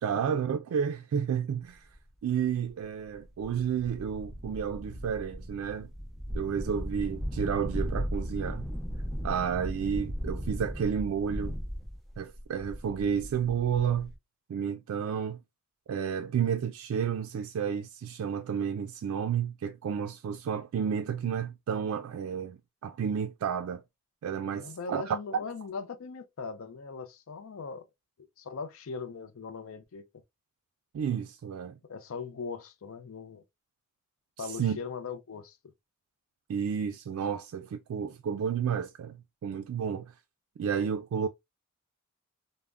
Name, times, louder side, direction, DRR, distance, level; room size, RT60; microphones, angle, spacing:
voice 1, 0.0-1.9 2.2-5.9 6.3-8.7 9.2-11.6 12.2-14.1 14.5-15.4 15.9-23.8 24.2-25.2 30.9-31.8 34.4-34.8 36.5-40.1 40.6-41.3, right 7 dB, 85° right, 0.3 m, -31 dB
sound 1, 1.9-2.0 2.7-2.8 3.1-14.1, equal, ahead, 0.6 m, -37 dB
voice 2, 24.5-27.8 28.4-30.1 31.9-33.4 34.4-35.6, left 5 dB, 70° left, 0.4 m, -40 dB
3.4 x 2.0 x 2.4 m
head